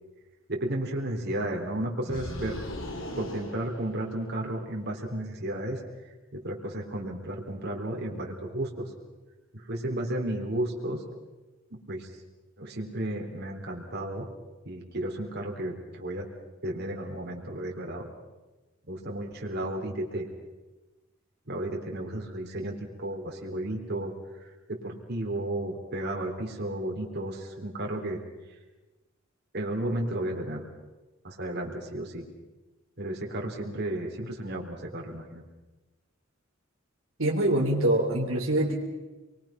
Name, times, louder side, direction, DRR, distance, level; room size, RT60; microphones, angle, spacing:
voice 1, 0.5-2.6 3.2-8.9 9.5-11.0 11.7-12.1 12.6-14.3 14.7-16.3 16.6-18.1 18.9-20.3 21.5-24.1 24.4-28.2 29.5-30.7 31.2-32.3 33.0-35.4, right 1 dB, 55° right, 0 dB, 3.6 m, -33 dB
sound 1, 2.0-4.5, left 1 dB, 75° left, 3.9 m, -39 dB
voice 2, 37.2-38.8, right 1 dB, 70° right, -1 dB, 3.3 m, -24 dB
28.0 x 22.0 x 5.9 m, 1.1 s
head